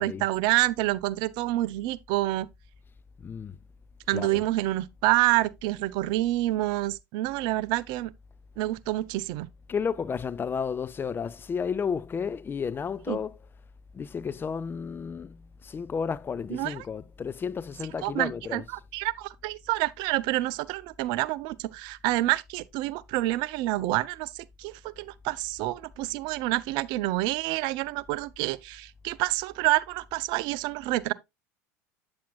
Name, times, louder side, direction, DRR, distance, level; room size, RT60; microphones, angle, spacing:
voice 1, 0.0-2.5 4.1-8.1 8.6-9.5 13.1-13.2 16.5-16.7 18.0-18.6 18.9-31.1, right 17 dB, 60° right, 0.5 m, -28 dB
voice 2, 3.2-3.6 4.1-4.4 9.7-13.5 13.9-18.8, left 6 dB, 25° left, 0.5 m, -32 dB
8.7 x 7.5 x 2.3 m
hypercardioid pair, 85°, 9 cm